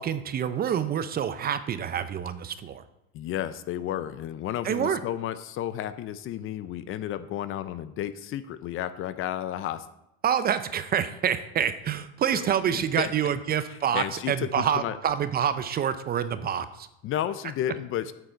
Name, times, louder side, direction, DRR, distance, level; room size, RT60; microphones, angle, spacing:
voice 1, 0.0-2.8 4.6-5.0 10.2-16.9, right 8 dB, 25° right, 12 dB, 0.5 m, -27 dB
voice 2, 3.1-9.9 12.3-13.1 13.7-15.0 17.0-18.1, left 11 dB, 40° left, 13 dB, 0.6 m, -32 dB
8.9 x 6.7 x 4.5 m, 0.86 s
supercardioid pair, 110°, 34 cm